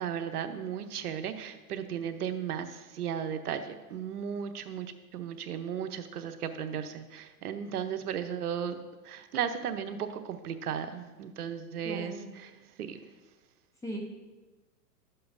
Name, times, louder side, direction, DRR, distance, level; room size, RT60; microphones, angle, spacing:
voice 1, 0.0-8.8 9.0-12.5 12.8-13.0, right 8 dB, 70° right, 8 dB, 0.9 m, -35 dB
voice 2, 11.8-12.3 13.8-14.0, right 1 dB, 5° left, -1 dB, 0.6 m, -38 dB
12.0 x 7.7 x 2.6 m, 1.2 s
hypercardioid pair, 135°, 48 cm